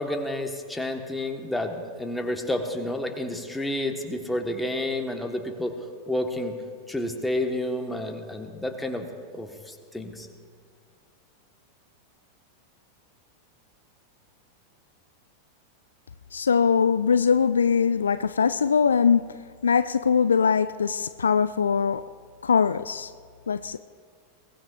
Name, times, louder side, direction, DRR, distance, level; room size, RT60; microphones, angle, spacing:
voice 1, 0.0-5.7 6.1-6.6 6.9-9.1 9.3-10.3, left 1 dB, 5° left, 1.4 m, -30 dB
voice 2, 16.3-19.3 19.6-22.0 22.4-23.1 23.5-23.8, left 6 dB, 70° left, 0.3 m, -22 dB
22.5 x 18.0 x 2.6 m
figure-of-eight pair, 90°, 0 cm